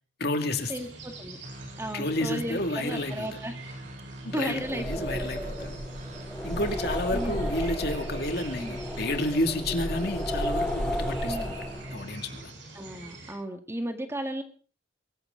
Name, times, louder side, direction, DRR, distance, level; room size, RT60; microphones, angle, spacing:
voice 1, 0.2-0.7 1.9-3.4 4.2-5.7 6.4-11.6 11.9-12.5, left 1 dB, 55° left, 5 dB, 2.4 m, -31 dB
sound 1, 0.5-13.3, right 2 dB, 80° right, 8.0 m, -46 dB
voice 2, 0.7-1.4 1.8-3.5 4.3-5.3 7.1-7.5 8.6-8.8 11.2-11.5 12.7-14.4, right 1 dB, 15° right, 5 dB, 2.0 m, -35 dB
sound 2, 1.4-12.4, right 1 dB, 40° right, 2.5 m, -43 dB
sound 3, 4.5-12.1, equal, 5° left, 4.9 m, -33 dB
23.5 x 15.0 x 3.9 m, 0.38 s
head